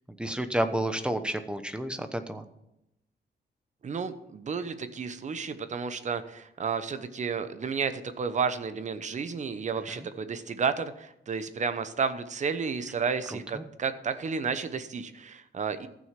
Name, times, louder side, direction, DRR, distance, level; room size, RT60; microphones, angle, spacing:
voice 1, 0.2-2.4 9.9-10.1 13.3-13.6, right 1 dB, 5° right, 9 dB, 0.9 m, -31 dB
voice 2, 3.8-15.9, right 5 dB, 40° right, 11 dB, 0.9 m, -32 dB
14.5 x 6.4 x 5.9 m, 0.84 s
wide cardioid pair, 140°, 18 cm